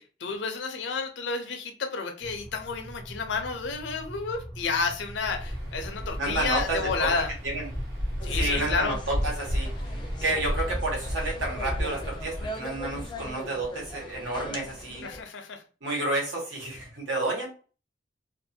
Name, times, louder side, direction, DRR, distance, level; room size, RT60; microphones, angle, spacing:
voice 1, 0.0-7.3 8.2-9.0 15.0-15.6, left 4 dB, 70° left, 0.5 m, -31 dB
sound 1, 2.2-12.3, equal, 15° right, 0.6 m, -44 dB
Waves surf, 5.2-12.5, equal, 60° right, 1.0 m, -33 dB
voice 2, 6.2-7.1 7.4-7.7 8.3-9.7 10.2-15.0 15.8-17.5, right 2 dB, 85° right, 1.2 m, -30 dB
sound 2, 8.2-15.2, left 1 dB, 25° left, 0.4 m, -40 dB
2.6 x 2.4 x 2.7 m
head